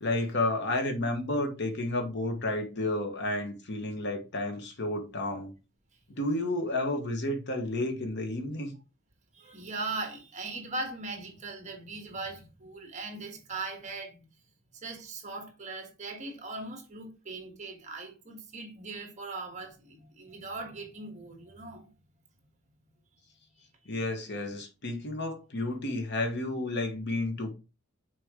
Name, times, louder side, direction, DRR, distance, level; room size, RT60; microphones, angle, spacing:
voice 1, 0.0-5.5 6.2-8.7 23.9-27.5, left 2 dB, 55° left, 1.3 m, -31 dB
voice 2, 9.3-14.2 14.7-21.9 23.6-23.9, right 3 dB, 35° right, 1.5 m, -39 dB
6.4 x 4.4 x 3.7 m
head